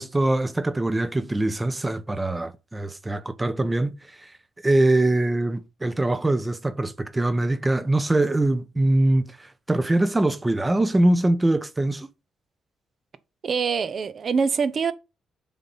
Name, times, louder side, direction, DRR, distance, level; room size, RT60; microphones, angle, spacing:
voice 1, 0.0-4.3 4.6-12.1, right 2 dB, 15° right, 0.9 m, -23 dB
voice 2, 13.4-14.9, right 5 dB, 45° right, 0.8 m, -24 dB
7.1 x 4.0 x 5.6 m
cardioid pair, 90°, 0 cm